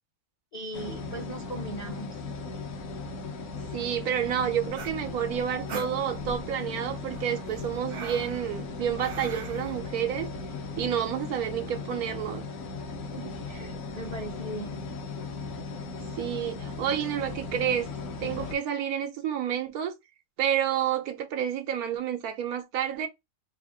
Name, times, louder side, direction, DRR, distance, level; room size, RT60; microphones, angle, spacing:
voice 1, 0.5-2.2 13.1-14.9, right 1 dB, 35° left, 0.7 m, -39 dB
sound 1, 0.7-18.6, left 3 dB, 70° left, 1.2 m, -37 dB
voice 2, 3.7-10.3 10.8-12.4 16.1-17.9 18.2-19.9 20.4-23.1, right 9 dB, 85° right, 1.2 m, -29 dB
sound 2, 4.7-6.5 7.1-9.8, right 5 dB, 55° right, 0.6 m, -42 dB
3.3 x 2.4 x 3.5 m
omnidirectional pair, 1.5 m